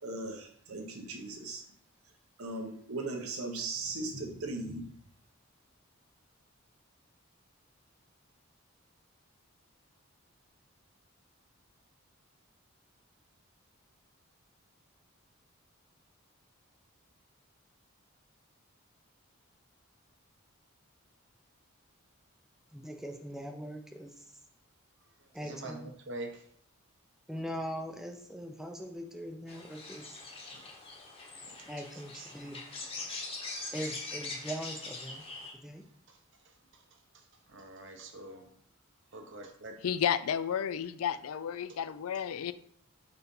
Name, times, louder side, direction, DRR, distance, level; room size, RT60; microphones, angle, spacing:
voice 1, 0.0-1.6 2.4-4.9, right 2 dB, 80° right, 3 dB, 1.1 m, -38 dB
voice 2, 22.7-24.1 25.3-25.9 27.3-30.1 31.7-32.6 33.7-35.2 35.6-35.8, equal, ahead, 3 dB, 0.5 m, -41 dB
voice 3, 25.4-26.4 30.5-30.6 31.6-31.7 32.1-32.3 32.8-33.1 36.1-36.2 37.5-38.5 39.1-39.8, right 2 dB, 55° right, 4 dB, 0.9 m, -44 dB
sound 1, 29.5-35.5, left 3 dB, 25° left, 1.0 m, -42 dB
voice 4, 39.8-42.5, left 8 dB, 80° left, 14 dB, 0.4 m, -32 dB
4.3 x 4.1 x 5.3 m, 0.64 s
head